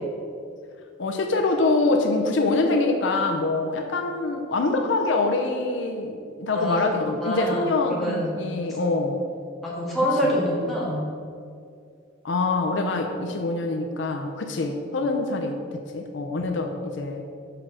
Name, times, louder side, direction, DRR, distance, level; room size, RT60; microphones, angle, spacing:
voice 1, 1.0-9.2 10.2-10.4 12.2-17.2, left 3 dB, 70° left, 3 dB, 0.6 m, -25 dB
voice 2, 7.2-8.4 9.6-11.0, equal, ahead, -7 dB, 1.8 m, -25 dB
5.7 x 5.0 x 6.1 m, 2.3 s
head